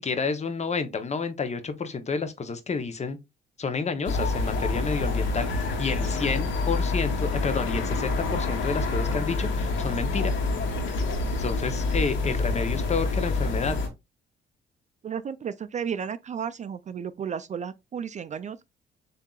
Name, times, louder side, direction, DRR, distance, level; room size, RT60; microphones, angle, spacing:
voice 1, 0.0-3.2 3.6-10.3 11.4-13.8, left 4 dB, 35° left, 0.9 m, -30 dB
sound 1, 4.0-13.9, left 3 dB, 75° left, 1.5 m, -27 dB
voice 2, 15.0-18.6, right 7 dB, 35° right, 0.4 m, -33 dB
7.3 x 2.8 x 2.4 m
cardioid pair, 90°, 20 cm